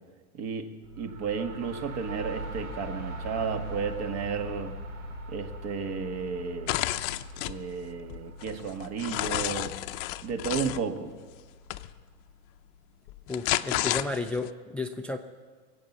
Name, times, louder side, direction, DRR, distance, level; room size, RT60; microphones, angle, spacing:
voice 1, 0.3-4.7 5.3-6.8 7.4-9.7 10.2-11.1, right 6 dB, 50° right, 6 dB, 1.9 m, -33 dB
sound 1, 0.8-12.5, equal, 85° right, 3.1 m, -42 dB
sound 2, 6.7-7.6 8.1-10.8 11.7-11.9 13.1-14.5, left 17 dB, 50° left, 0.7 m, -31 dB
voice 2, 13.3-15.2, left 3 dB, 5° left, 7 dB, 0.4 m, -32 dB
23.0 x 8.3 x 7.3 m, 1.5 s
supercardioid pair, 130°, 36 cm